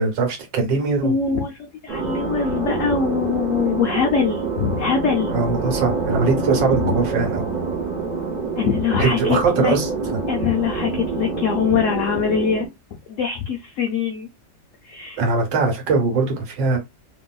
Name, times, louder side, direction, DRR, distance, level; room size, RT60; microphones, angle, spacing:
voice 1, 0.0-1.1 5.3-7.5 9.0-10.2 15.2-16.8, right 4 dB, 85° right, 1.7 m, -21 dB
voice 2, 1.0-5.3 6.8-6.9 8.6-9.8 10.3-12.7 13.1-14.3 14.8-15.2, left 6 dB, 90° left, 0.6 m, -23 dB
sound 1, 1.9-12.7, right 4 dB, 50° right, 0.5 m, -26 dB
2.9 x 2.7 x 2.2 m
omnidirectional pair, 1.9 m